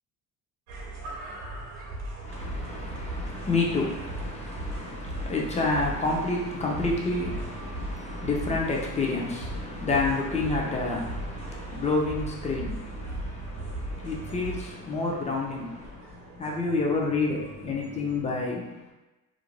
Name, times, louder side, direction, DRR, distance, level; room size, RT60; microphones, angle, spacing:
sound 1, 0.7-18.2, right 2 dB, 90° right, 0.7 m, -38 dB
voice 1, 2.2-18.8, left 3 dB, 20° left, -2 dB, 0.4 m, -29 dB
2.5 x 2.2 x 3.1 m, 1.1 s
cardioid pair, 125°, 36 cm